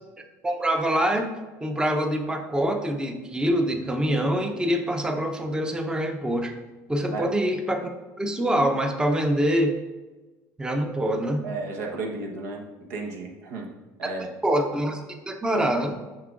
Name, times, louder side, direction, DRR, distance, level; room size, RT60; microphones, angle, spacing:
voice 1, 0.4-1.3 1.6-6.5 6.9-7.9 8.2-9.7 10.6-11.5 14.0-16.0, right 1 dB, 10° right, 5 dB, 0.6 m, -25 dB
voice 2, 11.4-13.7 14.0-14.3, right 3 dB, 90° right, 1 dB, 1.1 m, -33 dB
7.3 x 5.6 x 2.5 m, 1.2 s
supercardioid pair, 105°, 8 cm